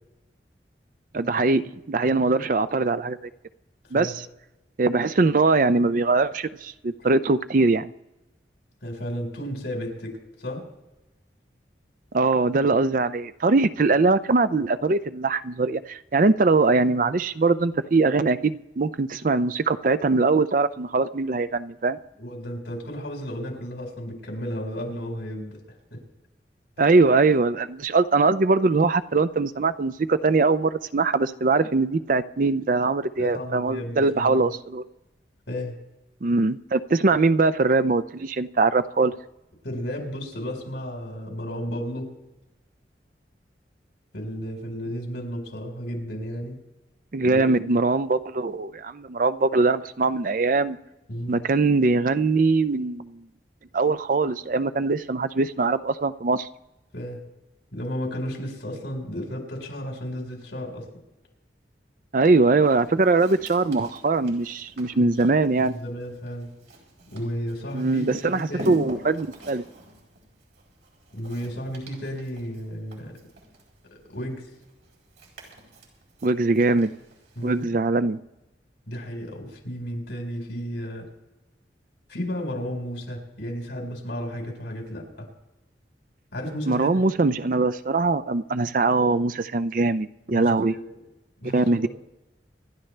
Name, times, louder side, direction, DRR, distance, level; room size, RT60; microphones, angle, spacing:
voice 1, 1.1-3.2 3.9-4.2 4.8-7.9 12.1-22.0 26.8-34.8 36.2-39.1 47.1-50.8 51.3-53.2 53.7-56.5 62.1-65.7 67.7-69.6 76.2-76.9 77.4-78.2 86.7-90.7 91.5-91.9, right 3 dB, 50° right, 12 dB, 0.5 m, -22 dB
voice 2, 8.8-10.7 22.2-25.6 25.9-26.0 33.2-34.5 35.5-35.8 39.6-42.1 44.1-46.6 47.2-47.5 51.1-51.4 56.9-57.2 57.7-60.9 65.0-66.5 67.1-68.9 71.1-73.1 74.1-74.5 77.4-77.7 78.9-81.1 82.1-85.3 86.3-87.0 90.3-90.8 91.4-91.9, equal, 85° left, 1 dB, 4.5 m, -33 dB
Walk footsteps, 62.6-77.7, equal, 85° right, 4.6 m, -46 dB
26.5 x 11.5 x 3.3 m, 0.97 s
head